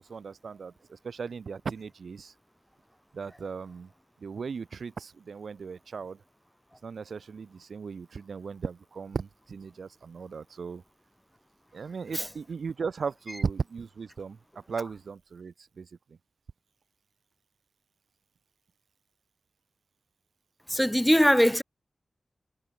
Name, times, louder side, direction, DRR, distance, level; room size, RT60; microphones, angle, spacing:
voice 1, 0.0-2.3 3.1-3.9 4.2-6.2 6.8-10.8 11.7-14.4 14.7-15.9, right 5 dB, 90° right, 3.7 m, -37 dB
voice 2, 20.7-21.6, equal, 5° left, 2.0 m, -21 dB
wide cardioid pair, 120°, 0 cm